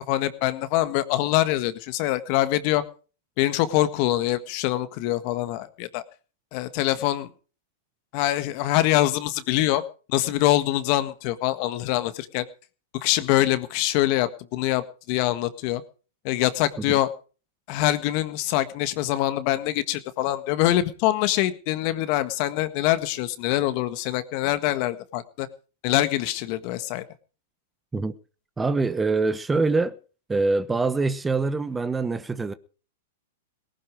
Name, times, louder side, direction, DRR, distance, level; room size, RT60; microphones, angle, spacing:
voice 1, 0.0-2.8 3.4-6.0 6.5-7.3 8.1-9.8 10.1-12.4 13.0-15.8 16.2-17.1 17.7-25.5 25.8-27.0, left 15 dB, 50° left, 1.5 m, -24 dB
voice 2, 28.6-30.0 30.3-32.5, right 3 dB, 10° right, 1.0 m, -24 dB
18.5 x 11.0 x 5.0 m
hypercardioid pair, 120°, 0 cm